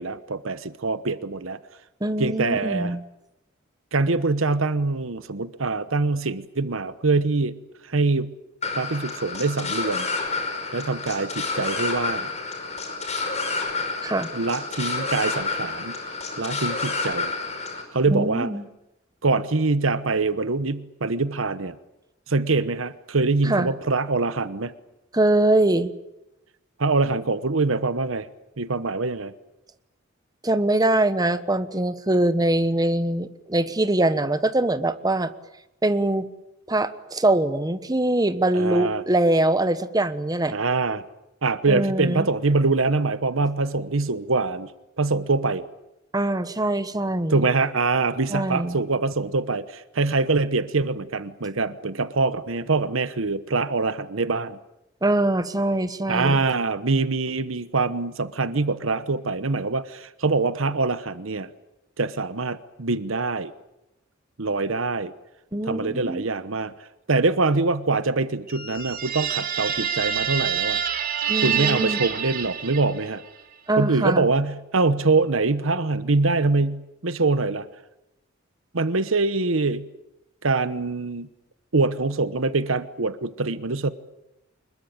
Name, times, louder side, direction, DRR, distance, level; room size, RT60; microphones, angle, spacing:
voice 1, 0.0-1.6 2.2-2.9 3.9-7.6 7.8-8.3 8.8-10.1 10.7-12.3 14.3-16.0 16.4-17.3 17.9-18.5 19.2-21.8 22.3-24.7 26.8-28.3 28.6-29.3 38.5-39.0 40.5-41.0 41.4-44.7 45.0-45.6 47.3-54.6 56.1-61.5 62.0-63.5 64.4-65.1 65.6-66.7 67.1-70.8 71.4-73.2 73.8-77.7 78.7-79.9 80.4-81.3 81.7-83.9, right 3 dB, 70° right, 14 dB, 1.1 m, -24 dB
voice 2, 2.0-3.0 14.0-14.3 18.1-18.6 23.4-23.7 25.1-25.9 30.4-35.3 35.8-36.3 36.7-40.5 41.7-42.3 46.1-47.4 48.3-48.8 55.0-56.4 65.5-66.2 71.3-72.0 73.7-74.2, right 1 dB, 20° right, 12 dB, 1.2 m, -23 dB
sound 1, 8.6-17.8, left 3 dB, 35° left, 5.2 m, -29 dB
sound 2, 68.5-73.2, right 8 dB, 45° right, 3.3 m, -27 dB
25.5 x 21.5 x 8.9 m, 0.91 s
head